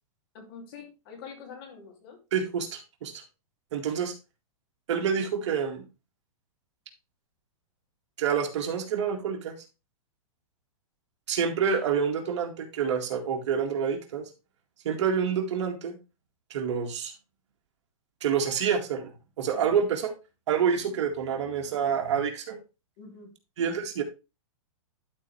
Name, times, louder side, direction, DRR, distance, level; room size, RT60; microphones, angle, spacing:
voice 1, 0.3-2.2 23.0-23.3, left 6 dB, 45° left, 4 dB, 2.6 m, -45 dB
voice 2, 2.3-3.2 3.7-4.1 4.9-5.9 8.2-9.6 11.3-14.3 14.8-16.0 16.5-17.1 18.2-19.1 19.4-20.1 20.5-22.6 23.6-24.0, right 7 dB, 55° right, 2 dB, 2.0 m, -27 dB
12.0 x 4.4 x 3.4 m, 0.28 s
hypercardioid pair, 165°, 18 cm